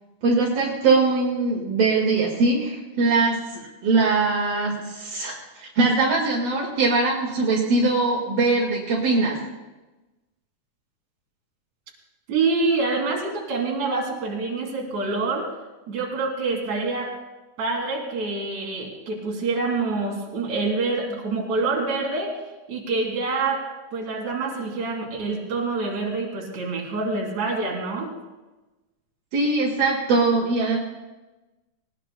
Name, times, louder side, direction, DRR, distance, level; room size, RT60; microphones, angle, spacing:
voice 1, 0.2-3.4 3.8-9.4 29.3-30.8, right 3 dB, 65° right, -3 dB, 3.6 m, -21 dB
voice 2, 12.3-15.5 15.9-17.1 17.6-22.3 22.7-23.6 23.9-28.1, right 3 dB, 50° right, -1 dB, 3.8 m, -26 dB
19.5 x 19.5 x 2.3 m, 1.1 s
omnidirectional pair, 4.6 m